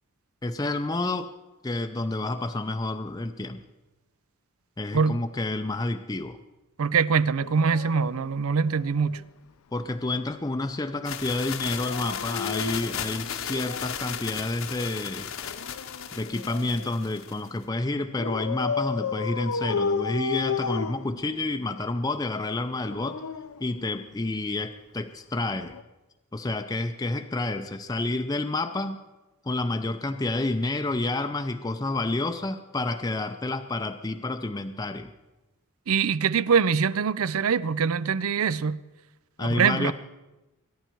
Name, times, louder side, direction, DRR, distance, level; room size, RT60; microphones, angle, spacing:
voice 1, 0.4-1.3 1.6-3.6 4.8-6.4 9.7-15.3 16.1-23.2 23.6-25.7 26.3-29.0 29.4-35.1 39.4-39.9, left 2 dB, 15° left, 0.5 m, -29 dB
voice 2, 6.8-9.2 35.9-38.8 39.4-39.9, right 6 dB, 80° right, 0.5 m, -23 dB
Dog, 7.4-9.2 11.7-14.1 15.3-17.0 18.2-21.7 22.7-24.3 25.6-25.8, left 5 dB, 90° left, 0.6 m, -33 dB
sound 1, 11.0-17.5, left 8 dB, 65° left, 1.0 m, -35 dB
23.5 x 10.5 x 4.5 m
head